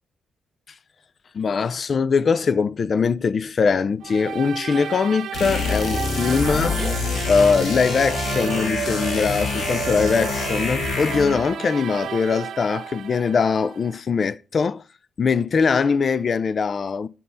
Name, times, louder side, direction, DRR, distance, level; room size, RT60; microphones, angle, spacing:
voice 1, 1.3-7.0 7.3-14.8 15.2-17.1, left 5 dB, 40° left, 0.4 m, -22 dB
sound 1, 4.0-14.0, right 9 dB, 75° right, 0.4 m, -33 dB
sound 2, 4.7-4.9 6.3-6.4 6.8-7.0 8.3-9.0, right 3 dB, 15° right, 1.0 m, -38 dB
sound 3, 5.3-11.5, left 4 dB, 65° left, 1.5 m, -26 dB
9.9 x 3.9 x 5.5 m
wide cardioid pair, 150°, 0 cm